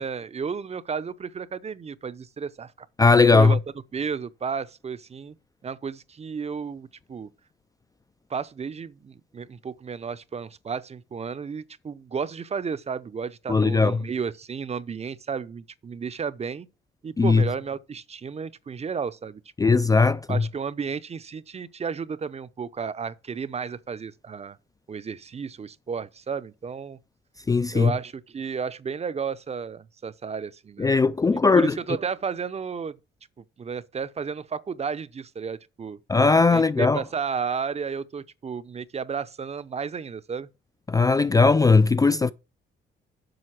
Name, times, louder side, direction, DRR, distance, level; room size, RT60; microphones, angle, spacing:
voice 1, 0.0-2.7 3.3-3.6 3.9-5.3 5.6-7.3 8.3-16.7 17.0-19.8 20.3-24.6 24.9-27.0 27.7-30.9 31.3-32.9 33.4-36.0 36.5-40.5, right 6 dB, 30° right, 0.6 m, -33 dB
voice 2, 3.0-3.6 13.5-14.0 17.2-17.4 19.6-20.4 27.5-27.9 30.8-31.8 36.1-37.0 40.9-42.3, left 4 dB, 20° left, 0.3 m, -18 dB
7.8 x 5.6 x 5.8 m
cardioid pair, 90°, 20 cm